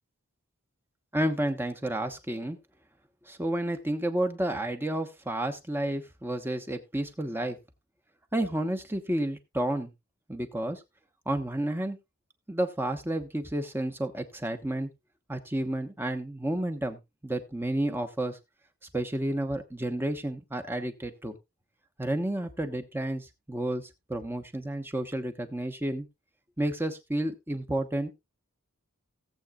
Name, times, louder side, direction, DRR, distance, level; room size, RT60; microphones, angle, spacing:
voice 1, 1.1-2.6 3.3-7.6 8.3-9.9 10.3-10.8 11.3-12.0 12.5-14.9 15.3-18.4 18.9-21.3 22.0-26.1 26.6-28.1, right 1 dB, 10° right, 6 dB, 1.1 m, -31 dB
17.5 x 7.9 x 2.4 m, 0.23 s
head